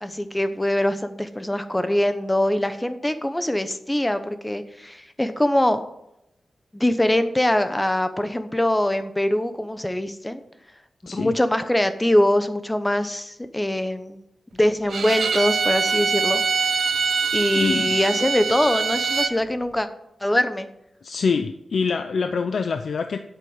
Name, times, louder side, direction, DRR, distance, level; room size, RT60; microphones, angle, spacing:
voice 1, 0.0-5.8 6.7-10.4 11.1-14.2 14.5-16.4 17.3-19.9 20.2-20.7, left 1 dB, 10° left, 10 dB, 0.9 m, -23 dB
Bowed string instrument, 14.9-19.3, right 6 dB, 75° right, 0.8 m, -23 dB
voice 2, 17.5-18.0 21.0-23.2, left 5 dB, 70° left, 8 dB, 0.6 m, -25 dB
8.3 x 7.9 x 8.2 m, 0.82 s
wide cardioid pair, 125°, 0 cm